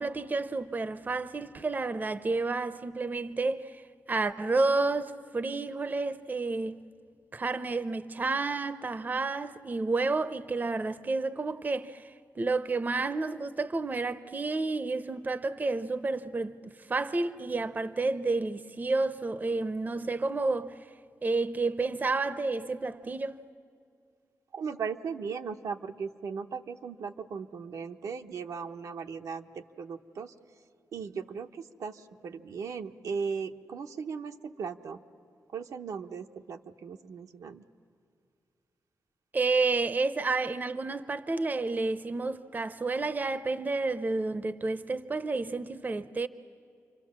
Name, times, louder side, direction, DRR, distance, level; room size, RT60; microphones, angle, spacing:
voice 1, 0.0-6.8 7.3-20.8 21.2-23.4 39.3-46.3, right 3 dB, 30° right, 0.7 m, -30 dB
voice 2, 24.5-30.3 30.9-35.0 35.5-37.6, right 5 dB, 80° right, 0.9 m, -37 dB
28.5 x 24.5 x 7.4 m
cardioid pair, 95°, 6 cm